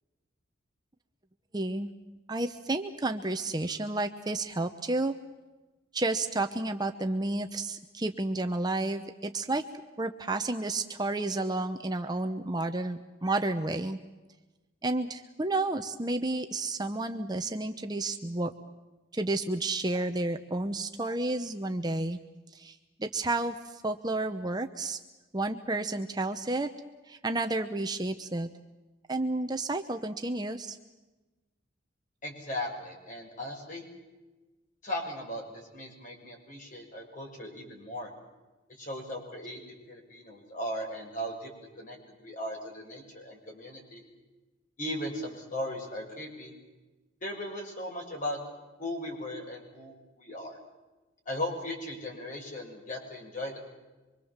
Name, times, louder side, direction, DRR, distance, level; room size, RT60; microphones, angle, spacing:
voice 1, 1.5-1.9 2.3-5.1 5.9-9.6 10.0-14.0 14.8-18.5 19.1-22.2 22.5-25.0 25.3-26.7 27.1-28.5 29.1-30.8, right 2 dB, 20° right, 7 dB, 0.9 m, -31 dB
voice 2, 32.2-33.8 34.8-38.1 38.7-39.6 39.9-41.5 41.8-44.0 44.8-46.5 47.2-48.4 48.8-50.6 51.2-53.6, left 1 dB, 40° left, 1 dB, 6.5 m, -37 dB
25.5 x 24.5 x 7.4 m, 1.1 s
head